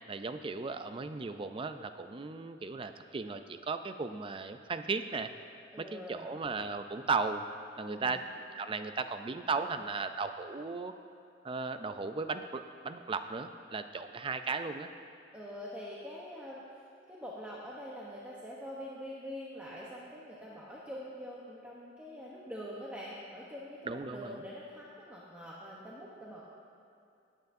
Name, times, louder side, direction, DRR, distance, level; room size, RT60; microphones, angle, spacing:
voice 1, 0.1-5.3 5.8-7.4 7.8-8.2 8.5-10.9 11.4-14.9 23.9-24.4, right 4 dB, 25° right, 9 dB, 0.4 m, -36 dB
voice 2, 5.7-6.3 7.8-8.1 15.3-16.6 17.1-26.4, equal, 10° right, -6 dB, 0.9 m, -44 dB
17.0 x 9.1 x 2.6 m, 2.6 s
head